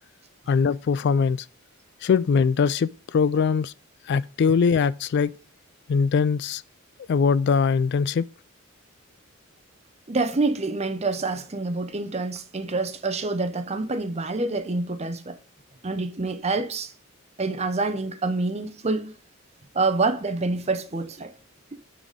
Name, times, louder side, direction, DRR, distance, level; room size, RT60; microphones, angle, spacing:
voice 1, 0.5-1.5 2.0-3.7 4.1-5.3 5.9-6.6 7.1-8.2, left 5 dB, 55° left, 0.3 m, -21 dB
voice 2, 10.1-15.4 15.8-16.9 17.4-19.1 19.7-21.3, right 3 dB, 30° right, 0.7 m, -27 dB
9.2 x 4.1 x 5.1 m
head